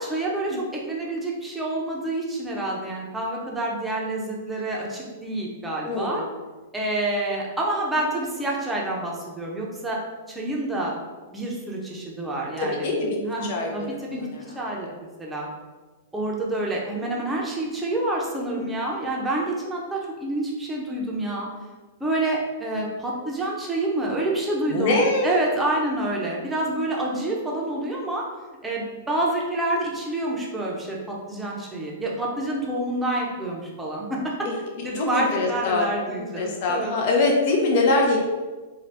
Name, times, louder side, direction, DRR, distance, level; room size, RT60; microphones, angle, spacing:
voice 1, 0.0-6.2 6.7-10.0 10.3-10.9 11.3-12.9 13.2-14.3 14.5-14.9 15.2-15.5 16.1-21.5 22.0-28.2 28.6-34.3 34.8-36.9, right 1 dB, 10° right, -3 dB, 0.7 m, -28 dB
voice 2, 5.8-6.3 12.6-14.4 18.5-18.6 24.7-25.3 34.4-34.5 34.9-35.9 36.2-38.2, left 2 dB, 50° left, 0 dB, 0.6 m, -24 dB
2.7 x 2.4 x 3.3 m, 1.3 s
hypercardioid pair, 120°, 0 cm